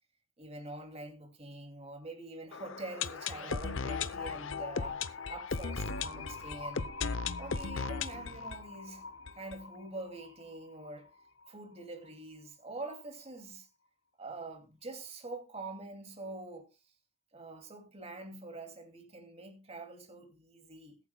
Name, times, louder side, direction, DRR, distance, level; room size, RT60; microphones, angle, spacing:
voice 1, 0.4-6.9 7.4-9.0 9.3-11.1 11.5-13.7 14.2-16.7 17.3-21.0, right 2 dB, 30° right, 2.6 m, -45 dB
sound 1, 2.5-10.3 10.6-10.7 10.8-10.9 11.5-11.6, left 5 dB, 65° left, 0.7 m, -37 dB
21.5 x 9.1 x 2.3 m
head